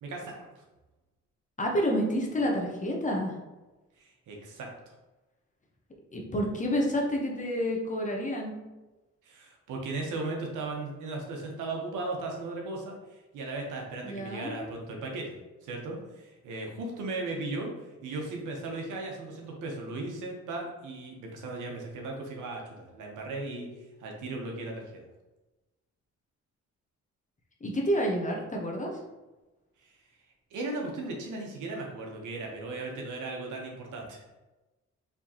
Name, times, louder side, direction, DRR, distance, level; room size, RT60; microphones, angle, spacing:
voice 1, 0.0-0.6 4.0-4.9 9.2-15.4 15.6-25.0 29.8-30.0 30.5-34.2, right 2 dB, 85° right, 0 dB, 1.0 m, -37 dB
voice 2, 1.6-3.3 6.1-8.5 14.0-14.6 27.6-28.9, equal, 25° left, 0 dB, 1.0 m, -29 dB
4.5 x 3.6 x 2.9 m, 1.1 s
cardioid pair, 90°, 30 cm